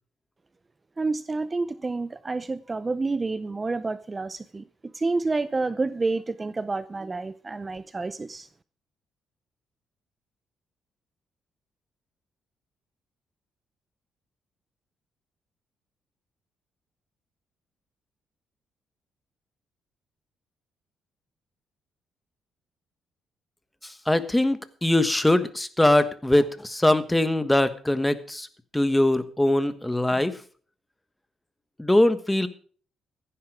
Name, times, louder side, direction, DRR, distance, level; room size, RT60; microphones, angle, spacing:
voice 1, 1.0-4.6 4.9-8.5, right 3 dB, 25° right, 15 dB, 0.5 m, -29 dB
voice 2, 23.8-28.5 28.7-30.4 31.8-32.5, left 1 dB, 10° left, 12 dB, 1.3 m, -22 dB
15.5 x 10.5 x 4.8 m, 0.44 s
cardioid pair, 90°, 0 cm